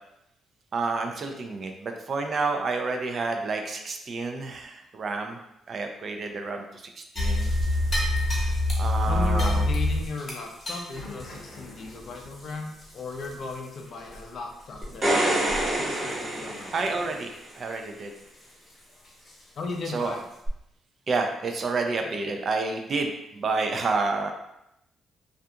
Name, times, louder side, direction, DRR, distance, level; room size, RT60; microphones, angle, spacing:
voice 1, 0.7-5.4 5.7-7.5 8.8-9.7 16.7-18.1 19.9-20.1 21.1-24.3, right 3 dB, 45° right, 4 dB, 0.4 m, -29 dB
sound 1, 7.2-13.7 14.1-14.2 14.7-15.0 15.4-15.8 16.1-16.2 16.8-16.9 19.3-19.4 20.0-20.1, left 1 dB, 35° left, 0.8 m, -27 dB
voice 2, 9.0-16.9 19.5-20.3, left 3 dB, 60° left, 2 dB, 0.4 m, -36 dB
sound 2, 14.8-17.4 20.5-20.6, right 1 dB, 30° right, 0.9 m, -26 dB
2.4 x 2.3 x 2.7 m, 0.82 s
cardioid pair, 90°, 0 cm